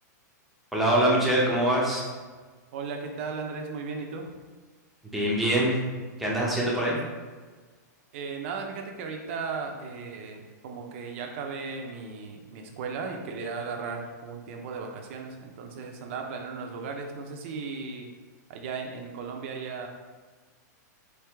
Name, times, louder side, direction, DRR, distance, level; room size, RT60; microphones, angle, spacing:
voice 1, 0.7-2.0 5.1-5.8 6.2-7.0, right 1 dB, ahead, -6 dB, 0.7 m, -24 dB
voice 2, 2.7-4.2 8.1-18.1 18.5-19.9, right 5 dB, 40° right, 2 dB, 0.6 m, -36 dB
4.6 x 2.8 x 3.4 m, 1.4 s
supercardioid pair, 165°, 10 cm